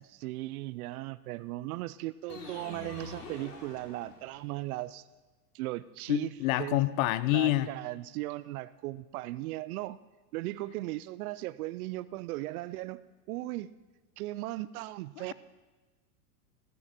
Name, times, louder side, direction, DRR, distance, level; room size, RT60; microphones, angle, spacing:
voice 1, 0.0-5.0 5.5-6.3 6.6-6.8 7.3-10.0 10.3-13.0 13.3-13.7 14.2-15.3, right 17 dB, 65° right, 17 dB, 0.5 m, -37 dB
sound 1, 2.3-4.6, left 3 dB, 80° left, 3.1 m, -46 dB
voice 2, 6.1-7.7, left 16 dB, 60° left, 16 dB, 0.7 m, -27 dB
15.5 x 9.9 x 4.3 m, 1.2 s
supercardioid pair, 120°, 48 cm